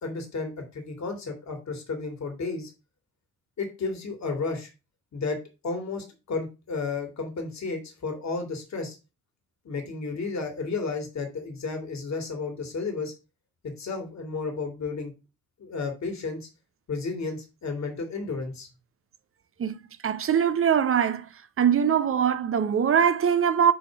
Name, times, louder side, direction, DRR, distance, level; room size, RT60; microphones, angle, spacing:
voice 1, 0.0-2.7 3.6-4.7 5.1-5.4 5.6-9.0 9.6-13.1 13.8-15.1 15.6-16.5 16.9-18.7, left 4 dB, 40° left, 2.2 m, -32 dB
voice 2, 20.0-21.3 21.6-23.7, right 8 dB, 30° right, 0.8 m, -22 dB
6.9 x 3.7 x 5.0 m
hypercardioid pair, 50°, 42 cm